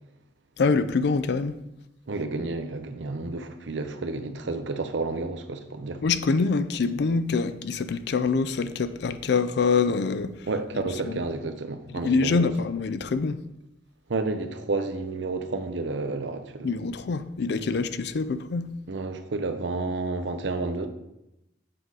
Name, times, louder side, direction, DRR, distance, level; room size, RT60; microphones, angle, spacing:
voice 1, 0.6-1.6 6.0-10.5 10.7-11.2 12.0-13.4 16.6-18.7, left 4 dB, 65° left, 0.4 m, -25 dB
voice 2, 2.1-6.0 10.5-12.5 14.1-16.7 18.9-20.9, right 3 dB, 75° right, 0.7 m, -30 dB
7.7 x 4.7 x 3.8 m
head